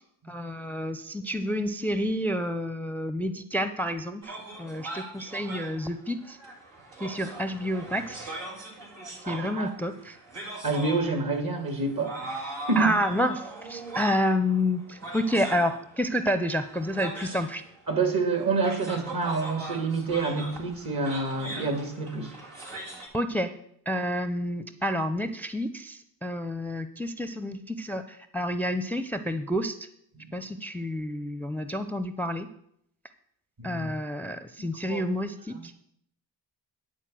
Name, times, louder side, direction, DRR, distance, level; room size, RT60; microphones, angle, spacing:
voice 1, 0.3-6.4 7.0-8.3 9.3-10.2 12.8-17.6 23.1-23.5 23.9-29.8 30.3-32.5 33.6-35.7, equal, 5° left, 10 dB, 0.6 m, -29 dB
sound 1, 4.2-23.1, right 2 dB, 85° right, 2.3 m, -40 dB
voice 2, 9.2-9.7 10.6-12.9 17.9-22.3 30.1-30.3 33.6-33.9 34.9-35.0 35.5-35.7, right 3 dB, 55° right, 5 dB, 2.3 m, -28 dB
10.5 x 4.2 x 7.6 m, 0.72 s
supercardioid pair, 55°, 43 cm